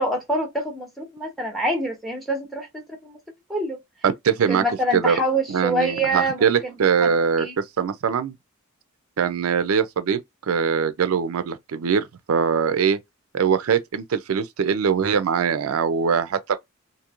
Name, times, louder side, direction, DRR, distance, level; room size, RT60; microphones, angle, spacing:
voice 1, 0.0-2.7 3.0-3.2 3.5-3.8 4.5-6.7 7.0-7.5, right 1 dB, ahead, 0.8 m, -26 dB
voice 2, 4.0-4.6 4.9-5.2 5.5-7.5 7.8-8.3 9.2-10.2 10.5-13.0 13.3-16.6, right 6 dB, 80° right, 0.4 m, -22 dB
3.0 x 2.6 x 2.4 m
head